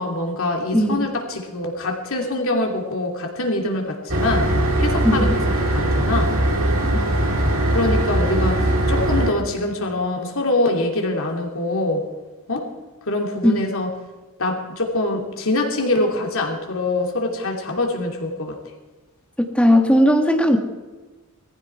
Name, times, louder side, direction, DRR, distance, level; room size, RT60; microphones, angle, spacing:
voice 1, 0.0-4.5 4.8-5.3 5.7-6.3 7.7-12.0 12.5-12.7 13.1-13.9 14.4-18.6, left 2 dB, 65° left, 2 dB, 2.9 m, -24 dB
voice 2, 0.7-1.1 5.0-5.4 6.9-7.0 13.4-13.6 19.5-20.6, equal, 5° left, 4 dB, 1.6 m, -17 dB
sound 1, 4.1-9.3, right 1 dB, 65° right, 2.6 m, -20 dB
19.0 x 14.5 x 4.6 m, 1.3 s
head